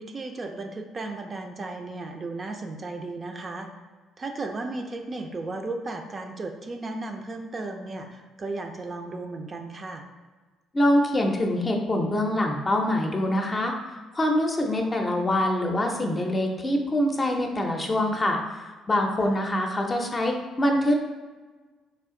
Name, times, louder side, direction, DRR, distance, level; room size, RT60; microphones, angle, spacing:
voice 1, 0.0-3.7 4.2-10.0 19.2-19.3, right 2 dB, 35° right, 3 dB, 0.5 m, -35 dB
voice 2, 10.7-13.7 14.1-20.9, left 1 dB, 30° left, 2 dB, 0.6 m, -24 dB
3.4 x 2.4 x 3.7 m, 1.3 s
supercardioid pair, 75°, 0 cm